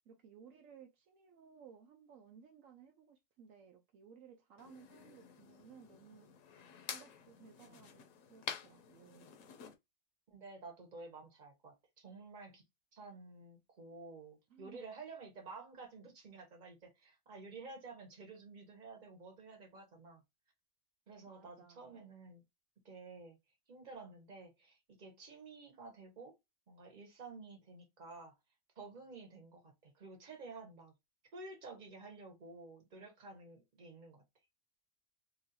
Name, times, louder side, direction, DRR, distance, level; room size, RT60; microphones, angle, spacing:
voice 1, 0.1-6.3 6.9-9.3 14.5-14.8 21.3-22.1, right 7 dB, 75° right, 1.0 m, -59 dB
sound 1, 4.6-9.7, left 8 dB, 75° left, 1.0 m, -49 dB
voice 2, 10.3-12.6 12.9-20.2 21.1-22.4 22.8-23.4 23.7-26.3 26.7-28.3 28.8-30.9 31.3-34.2, right 3 dB, 35° right, 1.2 m, -52 dB
3.0 x 2.7 x 2.8 m
omnidirectional pair, 1.4 m